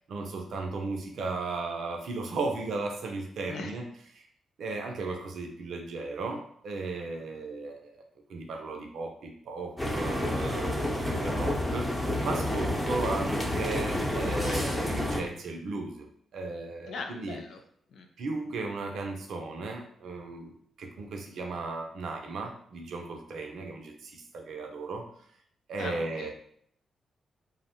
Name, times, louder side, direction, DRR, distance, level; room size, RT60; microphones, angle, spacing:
voice 1, 0.1-3.8 4.1-4.3 4.6-8.0 8.3-16.1 16.3-17.4 18.2-20.5 20.8-25.1 25.7-26.3, right 3 dB, 70° right, 3 dB, 0.4 m, -36 dB
sound 1, 9.8-15.2, left 1 dB, 15° left, 0.7 m, -29 dB
voice 2, 16.9-17.6 17.9-18.1 25.8-26.3, left 4 dB, 70° left, 4 dB, 0.4 m, -39 dB
2.5 x 2.0 x 2.8 m, 0.63 s
hypercardioid pair, 40°, 0 cm